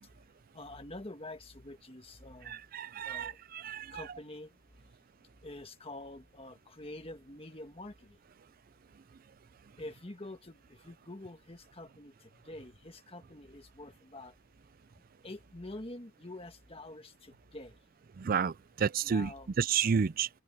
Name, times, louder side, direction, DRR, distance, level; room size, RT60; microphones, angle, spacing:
voice 1, 0.5-2.6 3.1-3.4 3.9-4.5 5.4-8.2 9.8-14.4 15.2-17.7 19.0-19.5, left 2 dB, 30° left, 1.6 m, -46 dB
voice 2, 2.5-4.0 18.2-19.3 19.6-20.3, right 6 dB, 45° right, 0.4 m, -31 dB
open air
head